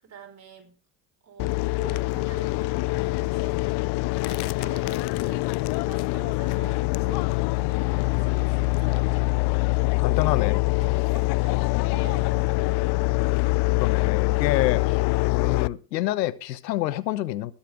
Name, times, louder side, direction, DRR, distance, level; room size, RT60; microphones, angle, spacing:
voice 1, 0.0-0.8 1.2-9.4 10.1-12.8 14.7-14.9, right 5 dB, 35° right, 0 dB, 4.8 m, -47 dB
sound 1, 1.4-15.7, left 25 dB, 55° left, 0.5 m, -24 dB
voice 2, 10.0-10.6 13.8-15.0 15.3-17.5, left 14 dB, 85° left, 19 dB, 0.9 m, -27 dB
20.5 x 8.4 x 3.5 m, 0.32 s
hypercardioid pair, 55°, 49 cm